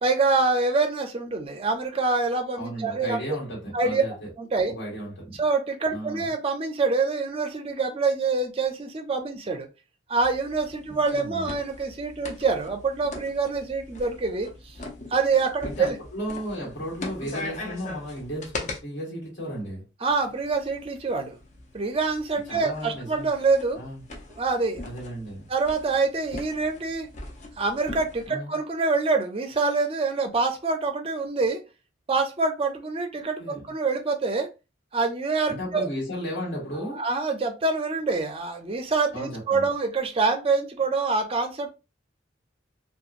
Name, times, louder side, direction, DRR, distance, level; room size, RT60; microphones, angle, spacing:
voice 1, 0.0-3.2 3.7-4.0 4.4-4.7 5.4-9.7 10.1-14.7 15.1-16.0 20.0-21.4 21.7-23.8 24.4-24.8 25.5-27.1 27.6-31.6 32.1-34.5 34.9-35.9 37.0-41.7, right 4 dB, 30° right, 0.4 m, -25 dB
voice 2, 2.5-4.3 4.7-5.4 5.9-6.3 10.9-11.5 15.6-19.9 22.5-23.3 23.7-24.0 24.8-25.5 28.3-28.5 33.4-33.6 35.5-37.0 39.1-39.7, equal, 60° left, 1.5 m, -34 dB
sound 1, 10.2-18.8 20.1-28.3, left 2 dB, 40° left, 0.5 m, -41 dB
2.8 x 2.3 x 2.4 m
head